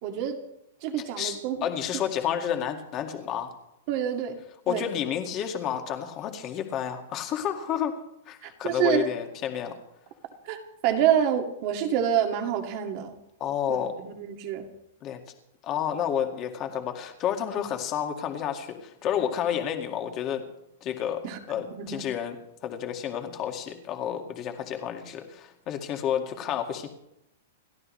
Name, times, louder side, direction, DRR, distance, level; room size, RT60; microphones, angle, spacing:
voice 1, 0.0-0.4 0.8-1.6 3.9-4.4 4.7-4.9 8.4-9.1 10.4-13.2 13.7-14.7 21.2-22.0, right 9 dB, 35° right, 4 dB, 2.2 m, -27 dB
voice 2, 1.6-3.5 4.7-7.9 8.3-9.8 13.4-13.9 15.0-15.2 15.6-20.4 20.8-22.4 22.6-26.9, left 9 dB, 25° left, 4 dB, 2.0 m, -30 dB
29.5 x 12.5 x 3.2 m, 0.81 s
supercardioid pair, 165°, 0 cm